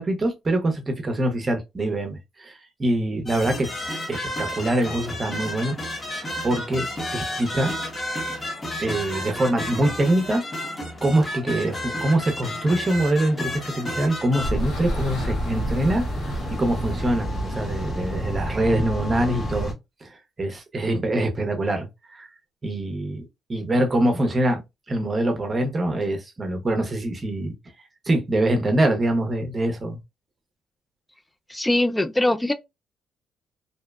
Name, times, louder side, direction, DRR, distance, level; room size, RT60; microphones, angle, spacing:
voice 1, 0.0-3.7 4.1-5.8 6.4-7.7 8.8-10.4 11.0-19.7 20.0-22.3 22.6-24.6 24.9-27.5 28.0-30.0, right 1 dB, 30° right, 0.7 m, -24 dB
sound 1, 3.3-14.5, left 1 dB, 30° left, 0.8 m, -32 dB
sound 2, 14.2-18.6, left 2 dB, 80° left, 1.2 m, -42 dB
sound 3, 14.4-19.7, equal, 55° left, 1.2 m, -28 dB
voice 2, 31.5-32.5, left 1 dB, 10° left, 0.3 m, -22 dB
2.6 x 2.1 x 2.2 m
cardioid pair, 90°, 0 cm